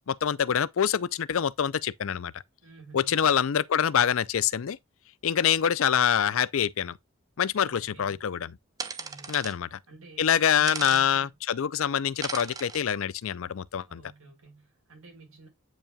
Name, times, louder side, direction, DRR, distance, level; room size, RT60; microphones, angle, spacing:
voice 1, 0.1-2.3 2.9-4.8 5.2-6.9 7.4-8.6 9.3-9.8 10.2-14.0, left 8 dB, 70° left, 0.4 m, -25 dB
voice 2, 2.6-3.3 7.6-8.2 9.0-9.5 9.9-11.3 13.9-15.5, right 3 dB, 75° right, 4.5 m, -51 dB
sound 1, 8.8-9.5 10.7-11.0 12.2-12.8, right 4 dB, 15° right, 0.6 m, -36 dB
8.8 x 5.4 x 2.3 m
head